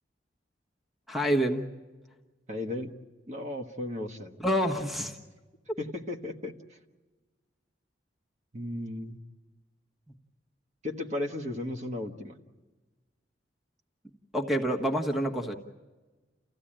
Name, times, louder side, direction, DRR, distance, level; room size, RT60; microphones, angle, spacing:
voice 1, 1.1-1.6 4.4-5.2 14.3-15.5, equal, ahead, 4 dB, 1.3 m, -27 dB
voice 2, 2.5-3.0 3.3-4.4 5.8-6.8 8.5-9.2 10.8-12.4, left 1 dB, 40° right, 2 dB, 1.5 m, -35 dB
29.5 x 15.0 x 8.9 m, 1.3 s
head